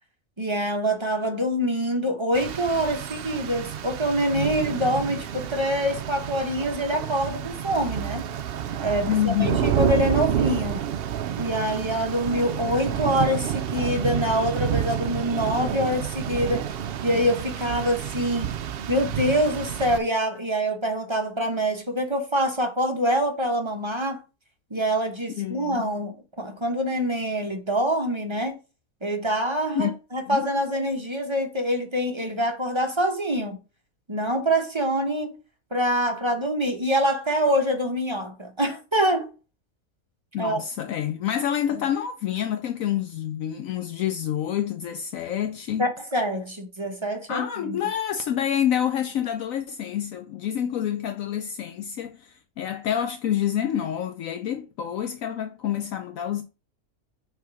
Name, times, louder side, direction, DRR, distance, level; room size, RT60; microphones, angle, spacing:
voice 1, 0.4-8.3 8.8-10.8 11.4-16.7 17.0-18.5 18.9-24.2 24.7-28.6 29.0-33.6 34.1-35.4 35.7-39.3 40.4-40.6 41.7-41.9 45.8-47.8, equal, 20° right, 0.9 m, -25 dB
Rain, 2.3-20.0, right 9 dB, 70° right, 0.5 m, -29 dB
voice 2, 9.1-9.6 25.4-25.9 29.8-29.9 30.3-30.5 40.3-45.8 47.3-56.4, left 10 dB, 70° left, 1.0 m, -27 dB
6.6 x 3.6 x 4.8 m
omnidirectional pair, 1.5 m